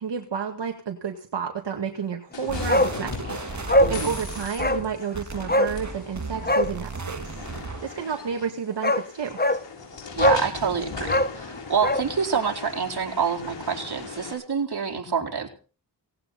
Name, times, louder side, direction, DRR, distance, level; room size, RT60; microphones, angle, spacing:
voice 1, 0.0-7.5 7.8-9.4, right 6 dB, 85° right, 3 dB, 2.1 m, -31 dB
sound 1, 2.3-14.3, left 4 dB, 85° left, 7.1 m, -38 dB
sound 2, 2.5-8.0, right 4 dB, 45° right, 1.9 m, -36 dB
Bark, 2.7-3.0 3.2-3.3 3.7-4.0 4.6-4.8 5.5-5.7 6.4-6.7 8.3-8.4 8.8-9.0 9.4-9.6 10.2-10.5 11.0-12.1 12.3-12.4, left 1 dB, 20° left, 1.5 m, -21 dB
voice 2, 3.8-4.1 10.1-15.5, right 6 dB, 65° right, 1 dB, 4.7 m, -27 dB
18.5 x 17.0 x 4.2 m, 0.39 s
cardioid pair, 40°, 42 cm